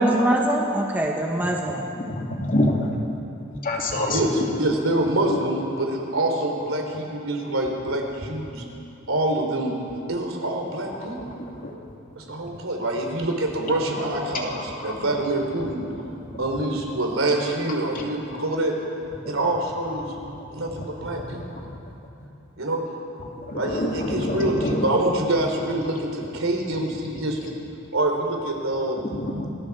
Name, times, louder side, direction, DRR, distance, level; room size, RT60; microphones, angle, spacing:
voice 1, 0.0-1.9 4.0-4.1, right 1 dB, 10° right, -1 dB, 1.5 m, -23 dB
voice 2, 2.1-2.9 3.6-4.2 11.6-11.7 23.5-23.9 24.2-24.8 29.1-29.5, left 1 dB, 45° left, 0 dB, 2.8 m, -25 dB
voice 3, 4.1-8.6 9.1-9.7 10.1-11.2 12.2-15.9 16.4-18.7 19.3-20.1 20.5-21.4 22.6-22.8 23.6-27.6 27.9-29.0, right 1 dB, 75° right, 1 dB, 3.6 m, -26 dB
27.0 x 20.0 x 4.9 m, 2.7 s
head